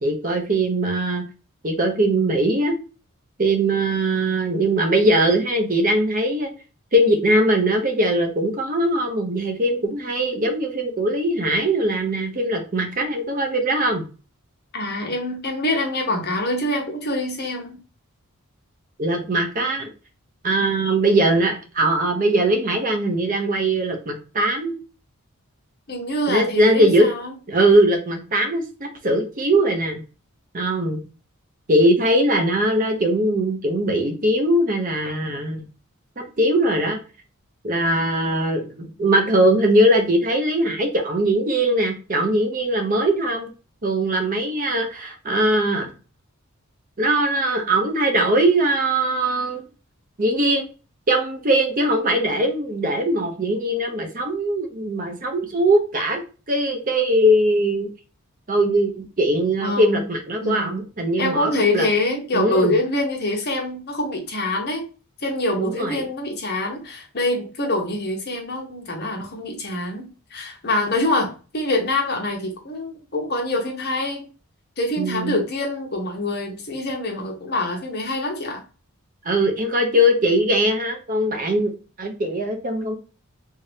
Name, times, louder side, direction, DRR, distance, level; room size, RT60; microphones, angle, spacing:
voice 1, 0.0-1.2 1.6-2.8 3.4-6.5 6.9-14.0 19.0-19.9 20.4-24.7 26.3-27.1 27.5-30.0 30.5-31.0 31.7-35.6 36.2-37.0 37.6-43.5 43.8-45.9 47.0-49.6 50.2-50.7 51.1-56.2 56.5-57.9 58.5-61.9 62.3-62.7 65.6-66.1 75.0-75.4 79.2-83.0, right 1 dB, 40° right, 5 dB, 0.7 m, -20 dB
voice 2, 14.7-17.8 25.9-27.3 59.6-60.1 60.4-60.8 61.2-64.8 65.2-74.2 74.8-78.6, left 2 dB, 45° left, 2 dB, 0.9 m, -25 dB
3.4 x 2.7 x 3.3 m, 0.34 s
head